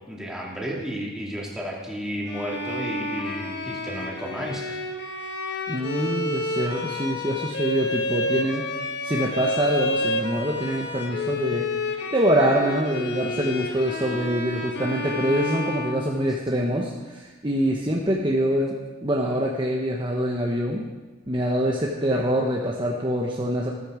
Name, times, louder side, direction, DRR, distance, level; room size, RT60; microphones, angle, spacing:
voice 1, 0.1-4.8, equal, 5° right, -3 dB, 2.7 m, -32 dB
Bowed string instrument, 2.3-16.6, left 1 dB, 55° left, 1.5 m, -30 dB
voice 2, 5.7-8.7 9.0-20.9 21.3-23.7, equal, 25° right, -2 dB, 1.1 m, -25 dB
14.0 x 14.0 x 5.0 m, 1.3 s
head